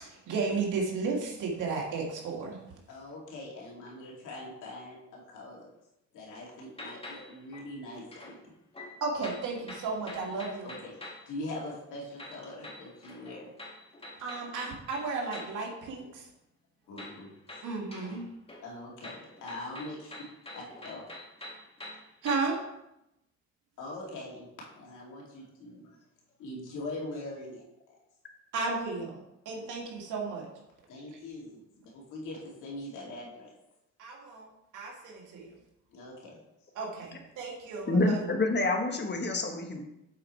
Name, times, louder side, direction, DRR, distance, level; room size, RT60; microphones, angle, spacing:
voice 1, 0.0-2.6 9.0-10.7 14.2-16.3 17.6-18.2 22.2-22.6 28.5-30.5 34.0-35.5 36.8-38.2, right 4 dB, 85° right, -1 dB, 2.0 m, -34 dB
voice 2, 2.9-5.7 6.1-8.4 10.6-11.0 11.3-13.5 16.9-17.3 18.6-20.1 20.5-21.0 23.8-24.5 24.7-25.9 26.4-28.0 29.5-29.7 30.9-33.5 35.9-36.7, left 2 dB, 85° left, -3 dB, 2.5 m, -42 dB
sound 1, 6.8-8.4 8.7-11.3 12.2-15.6 17.0-18.2 18.5-22.6, left 1 dB, 20° left, 1.9 m, -46 dB
voice 3, 37.9-39.8, left 2 dB, 35° left, 4 dB, 1.4 m, -27 dB
7.5 x 4.8 x 4.4 m, 0.88 s
cardioid pair, 90°, 30 cm